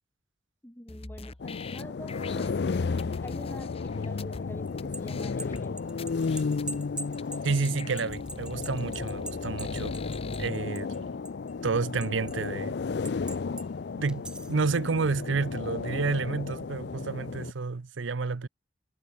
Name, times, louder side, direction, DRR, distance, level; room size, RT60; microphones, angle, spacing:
voice 1, 0.6-6.0, equal, 10° left, 2.3 m, -45 dB
sound 1, 0.9-4.4 4.8-4.9 5.1-5.6 6.0-6.8 7.2-7.3 7.5-10.5, left 3 dB, 30° left, 1.0 m, -43 dB
sound 2, 1.4-17.5, left 4 dB, 60° left, 0.4 m, -33 dB
sound 3, 4.7-11.0 11.3-12.5 13.1-13.7 14.1-14.6, right 2 dB, 5° right, 0.4 m, -42 dB
voice 2, 7.4-10.0 10.4-11.2 11.6-12.8 13.9-18.5, right 4 dB, 90° right, 0.7 m, -30 dB
head